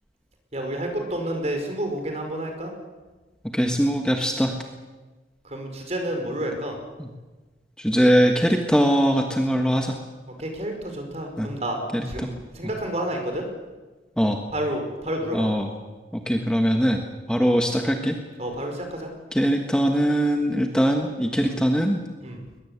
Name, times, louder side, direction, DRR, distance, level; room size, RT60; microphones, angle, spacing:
voice 1, 0.5-2.7 5.4-6.8 10.4-13.4 14.5-15.5 17.5-17.7 18.4-19.1 21.4-21.6 22.2-22.4, right 1 dB, 40° right, 4 dB, 5.2 m, -30 dB
voice 2, 3.5-4.5 7.0-7.1 7.8-10.0 11.4-11.5 11.9-12.3 14.2-14.4 15.3-15.7 16.1-17.0 17.3-18.1 19.3-22.0, equal, 5° left, 3 dB, 1.4 m, -21 dB
21.5 x 21.0 x 8.2 m, 1.3 s
head